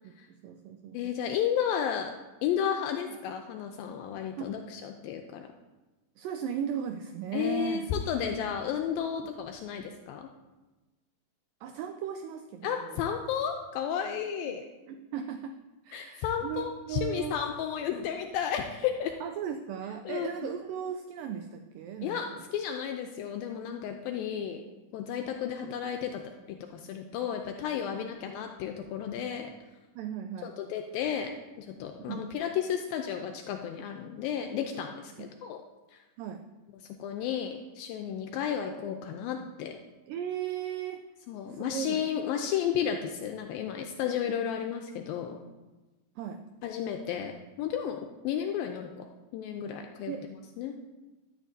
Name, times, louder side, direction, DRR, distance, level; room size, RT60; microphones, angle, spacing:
voice 1, 0.0-1.1 4.4-4.5 6.2-7.9 8.2-8.6 11.6-13.0 14.5-14.6 14.9-15.6 15.8-17.4 19.2-22.4 27.9-28.1 30.0-30.5 32.1-32.3 35.2-35.3 36.2-36.4 40.1-41.0 41.5-42.0 46.2-46.4 50.1-50.2, right 8 dB, 80° right, 6 dB, 2.0 m, -37 dB
voice 2, 0.9-2.1 2.4-5.5 7.3-10.3 12.6-14.6 15.9-19.1 20.1-20.3 22.0-24.6 24.9-26.2 26.5-29.5 30.4-31.3 31.6-35.6 35.9-36.0 37.0-39.8 41.3-45.4 46.6-47.3 47.6-49.1 49.3-50.1 50.6-50.7, left 8 dB, 85° left, 4 dB, 2.3 m, -33 dB
12.0 x 8.9 x 2.7 m, 1.1 s
omnidirectional pair, 4.3 m